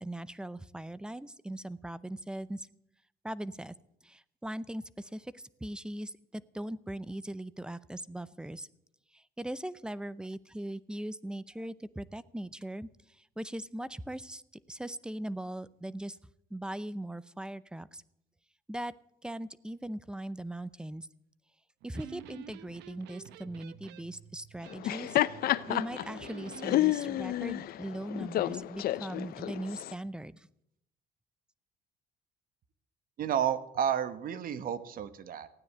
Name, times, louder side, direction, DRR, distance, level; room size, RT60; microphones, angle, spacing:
voice 1, 0.0-2.7 3.2-3.7 4.0-8.7 9.1-14.4 14.7-16.2 16.5-18.0 18.7-18.9 19.2-21.1 21.8-25.2 25.7-30.5, right 1 dB, 5° right, 18 dB, 0.6 m, -40 dB
Electric guitar, 21.8-26.8, right 10 dB, 85° right, 0.9 m, -50 dB
Laughter, 24.7-29.9, left 14 dB, 65° left, 0.6 m, -30 dB
voice 2, 33.2-35.5, right 9 dB, 55° right, 13 dB, 1.2 m, -31 dB
16.0 x 9.6 x 8.1 m, 0.75 s
cardioid pair, 110°, 17 cm